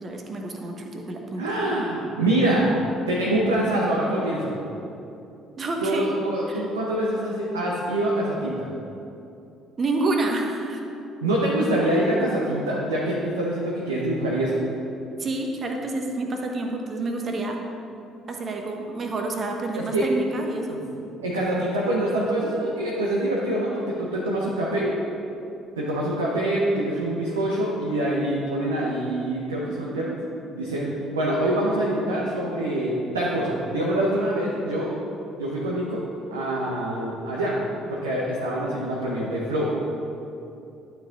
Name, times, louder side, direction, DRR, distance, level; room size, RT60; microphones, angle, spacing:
voice 1, 0.0-1.4 5.6-6.0 6.5-6.7 9.8-10.8 15.2-17.6 18.3-20.8, right 2 dB, 40° right, 2 dB, 1.0 m, -28 dB
voice 2, 1.4-2.7 3.1-4.5 5.8-8.7 11.2-14.6 19.8-20.1 20.9-24.9 25.8-30.2 30.5-34.9 35.4-36.0 36.3-37.6 37.9-39.7, right 1 dB, 80° right, -5 dB, 0.8 m, -25 dB
11.5 x 4.6 x 3.8 m, 2.8 s
figure-of-eight pair, 50°, 0 cm